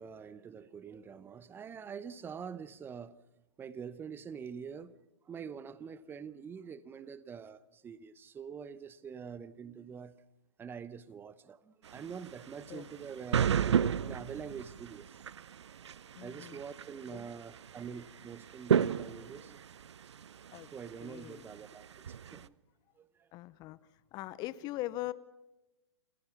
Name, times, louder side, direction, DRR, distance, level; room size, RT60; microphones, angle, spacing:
voice 1, 0.0-3.2 3.6-4.9 5.3-10.1 10.6-13.7 14.0-15.2 16.2-19.6 20.7-22.5 23.0-23.3, right 6 dB, 15° right, 0.8 m, -45 dB
sound 1, 11.9-22.5, right 8 dB, 70° right, 0.7 m, -34 dB
voice 2, 16.2-16.6 17.1-17.3 20.5-20.7 21.0-21.5 23.3-23.8 24.1-25.1, left 16 dB, 25° left, 0.7 m, -41 dB
28.5 x 17.5 x 5.9 m
figure-of-eight pair, 120°, 15 cm